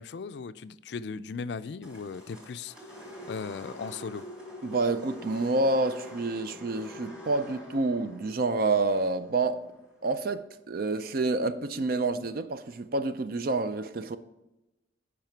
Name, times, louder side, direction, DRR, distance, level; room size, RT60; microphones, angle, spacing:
voice 1, 0.0-2.7 3.3-4.2, left 5 dB, 60° left, 0.3 m, -37 dB
sound 1, 1.8-10.1, left 1 dB, 5° right, 1.9 m, -46 dB
voice 2, 4.6-9.6 10.0-14.2, right 3 dB, 50° right, 0.4 m, -28 dB
10.5 x 4.9 x 4.5 m
head